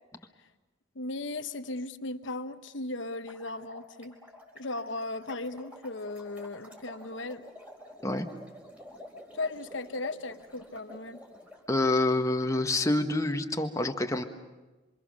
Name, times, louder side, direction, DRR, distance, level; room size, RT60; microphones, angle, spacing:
voice 1, 0.9-4.1 4.5-7.4 9.3-11.2, left 2 dB, 70° left, 1.1 m, -36 dB
sound 1, 3.3-11.6, left 1 dB, 5° right, 4.0 m, -50 dB
voice 2, 11.7-14.2, left 2 dB, 15° left, 1.3 m, -27 dB
27.0 x 26.5 x 6.4 m
head